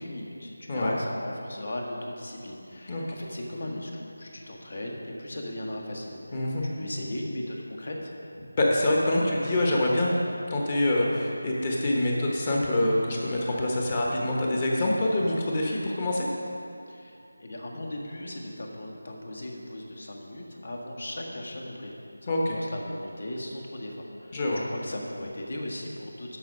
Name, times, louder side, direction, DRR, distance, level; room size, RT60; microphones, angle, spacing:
voice 1, 0.0-8.5 16.9-24.4 24.7-26.4, left 1 dB, 65° left, -1 dB, 1.7 m, -38 dB
voice 2, 6.3-6.6 8.6-10.1 10.5-16.3 22.3-22.6 24.3-24.6, left 1 dB, 30° left, -2 dB, 1.2 m, -25 dB
12.0 x 5.2 x 5.4 m, 2.7 s
figure-of-eight pair, 170°, 0 cm